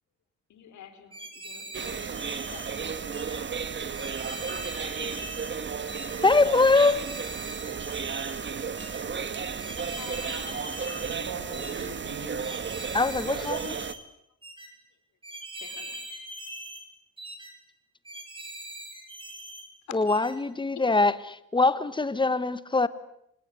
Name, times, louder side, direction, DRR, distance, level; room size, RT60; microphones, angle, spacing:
voice 1, 0.5-2.0 2.5-2.7 4.0-5.2 9.8-10.6 15.6-16.0, left 8 dB, 70° left, 4.7 m, -50 dB
sound 1, 1.1-2.7 3.1-3.4 3.9-5.5 5.9-6.2 6.8-8.4 8.8-9.0 9.6-11.2 11.5-11.9 12.4-14.0 14.4-14.7 15.2-16.8 17.2-17.5 18.0-19.6 20.1-20.3, right 1 dB, 15° right, 6.5 m, -41 dB
sound 2, 1.7-13.9, right 6 dB, 40° right, 1.7 m, -34 dB
voice 2, 6.2-7.0 12.9-13.7 19.9-22.9, left 3 dB, 15° left, 1.6 m, -23 dB
voice 3, 11.0-12.4 12.9-13.5, right 4 dB, 65° right, 6.5 m, -41 dB
26.5 x 20.5 x 9.8 m
cardioid pair, 90°, 30 cm